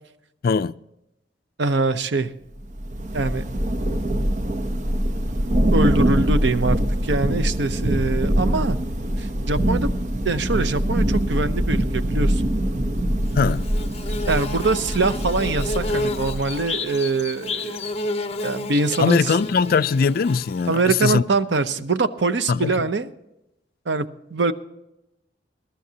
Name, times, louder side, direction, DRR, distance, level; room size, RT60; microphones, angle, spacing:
voice 1, 0.4-0.7 13.4-13.7 19.0-21.2 22.5-22.9, left 5 dB, 55° left, 0.4 m, -20 dB
voice 2, 1.6-2.3 3.1-3.4 5.7-8.8 9.2-9.9 10.2-12.4 14.3-17.8 18.4-19.2 20.7-23.1 23.9-24.5, right 3 dB, 90° right, 0.8 m, -23 dB
Thunder / Rain, 2.6-16.7, right 1 dB, 45° right, 0.9 m, -23 dB
Bird / Buzz, 13.3-21.0, left 2 dB, 35° left, 0.9 m, -31 dB
21.5 x 12.5 x 2.9 m
head